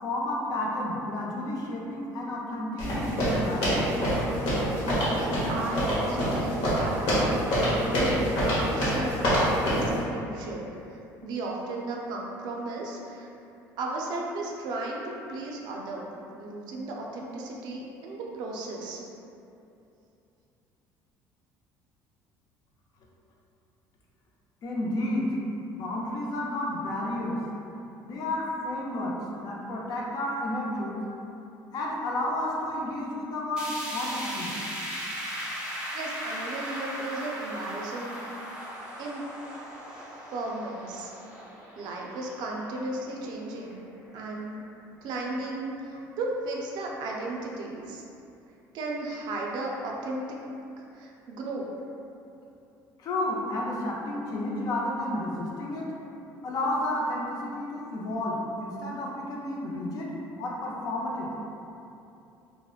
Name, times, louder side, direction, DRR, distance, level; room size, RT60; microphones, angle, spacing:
voice 1, 0.0-3.8 24.6-25.3 25.7-27.4 28.0-31.0 31.7-34.5 53.0-55.9 56.4-61.3, left 1 dB, 50° left, -3 dB, 0.4 m, -31 dB
sound 1, 2.8-9.9, equal, 75° left, 1.0 m, -25 dB
voice 2, 5.0-6.9 7.5-8.3 8.7-9.5 9.8-13.3 13.8-15.0 15.3-19.0 35.9-38.4 39.0-39.2 40.3-41.1 41.8-43.8 44.1-44.6 45.0-48.0 48.7-50.4 50.9-51.7, right 2 dB, 65° right, -1 dB, 0.4 m, -35 dB
sound 2, 33.6-43.7 44.1-44.2 44.6-44.7 45.6-45.7, equal, 10° right, 0.5 m, -38 dB
2.8 x 2.0 x 2.3 m, 2.7 s
cardioid pair, 125°, 8 cm